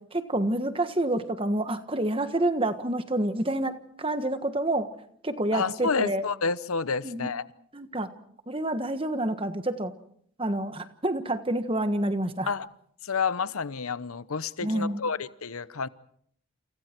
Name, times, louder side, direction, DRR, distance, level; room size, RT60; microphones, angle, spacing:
voice 1, 0.1-4.9 5.2-6.2 7.0-7.3 7.7-8.1 8.5-9.9 10.4-12.5 14.6-15.0, right 1 dB, 25° right, 9 dB, 1.4 m, -28 dB
voice 2, 5.5-7.5 12.5-12.7 13.0-15.9, left 5 dB, 85° left, 15 dB, 0.9 m, -29 dB
29.0 x 29.0 x 4.6 m, 0.67 s
head